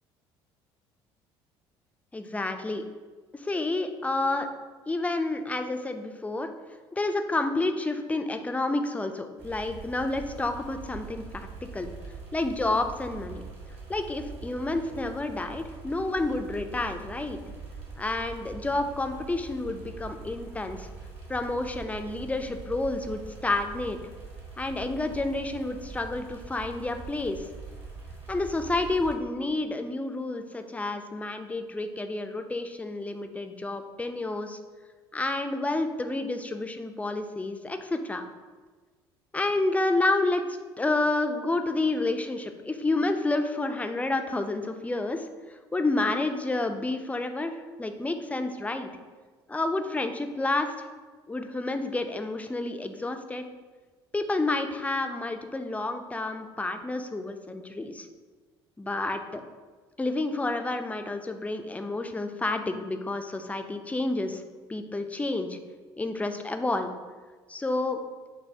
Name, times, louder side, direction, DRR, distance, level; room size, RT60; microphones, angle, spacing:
voice 1, 2.1-2.8 3.3-4.5 4.9-6.5 6.9-11.5 11.7-11.9 12.3-13.4 13.9-17.4 18.0-20.9 21.3-24.0 24.6-27.5 28.3-34.6 35.1-38.2 39.3-40.5 40.8-45.3 45.7-47.5 47.8-48.9 49.5-50.9 51.3-53.4 54.1-58.1 58.8-59.4 60.0-64.4 64.7-65.6 66.0-66.9 67.5-68.0, left 2 dB, 10° left, 7 dB, 0.4 m, -29 dB
sound 1, 9.4-29.1, right 4 dB, 50° right, 1.5 m, -43 dB
6.4 x 2.2 x 2.7 m, 1.4 s
hypercardioid pair, 65°, 13 cm